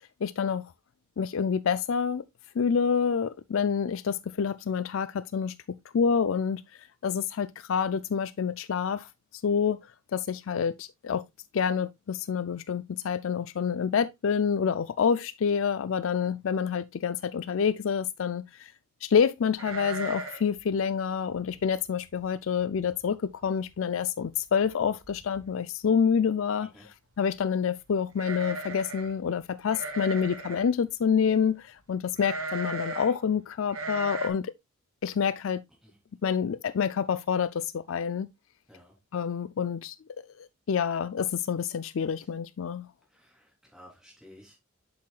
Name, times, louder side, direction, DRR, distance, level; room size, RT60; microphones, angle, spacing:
voice 1, 0.2-0.6 1.2-2.2 2.6-5.5 5.9-6.6 7.0-9.1 9.4-9.8 10.1-11.2 11.5-18.7 19.0-23.2 23.4-26.7 27.2-34.5 35.0-35.6 36.2-38.3 39.1-39.9 40.4-42.9, left 6 dB, 70° left, 0.4 m, -27 dB
sound 1, 19.6-20.6 20.8-20.9 21.4-21.7 22.2-22.3 22.6-23.1 23.4-23.5 24.6-24.7 25.0-25.5 28.1-29.1 29.7-30.7 32.2-33.1 33.7-34.3, right 2 dB, 80° right, 1.6 m, -36 dB
voice 2, 43.1-44.6, equal, ahead, 3.4 m, -54 dB
7.6 x 7.1 x 2.4 m
head